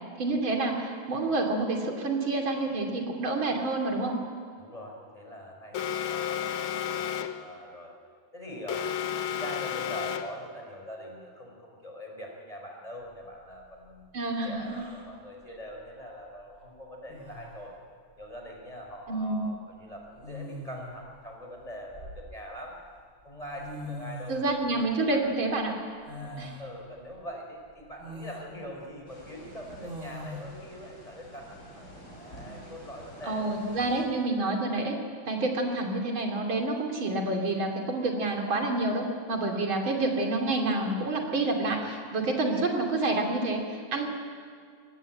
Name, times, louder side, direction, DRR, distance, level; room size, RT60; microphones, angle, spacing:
voice 1, 0.2-4.2 14.1-14.6 19.1-19.5 24.3-25.7 26.4-26.5 33.3-35.0 35.3-44.1, right 2 dB, 80° right, 2 dB, 3.5 m, -28 dB
voice 2, 4.6-7.1 7.4-7.9 8.3-8.9 9.3-17.7 18.2-22.8 23.2-24.4 24.7-25.2 26.0-33.6, equal, 15° left, 0 dB, 4.7 m, -43 dB
Alarm, 5.7-7.5 8.7-10.5, left 9 dB, 85° left, 1.9 m, -32 dB
sound 1, 14.6-15.1 16.6-16.7 17.1-17.6 18.9-19.1 20.2-21.0 21.6-22.6 23.3-23.4 23.6-24.5 26.1-26.7 27.2-27.3 28.0-28.5 29.8-30.4, equal, 35° right, 3.2 m, -41 dB
sound 2, 29.1-34.1, right 1 dB, 40° left, 6.2 m, -48 dB
23.5 x 18.0 x 8.8 m, 2.1 s
omnidirectional pair, 2.2 m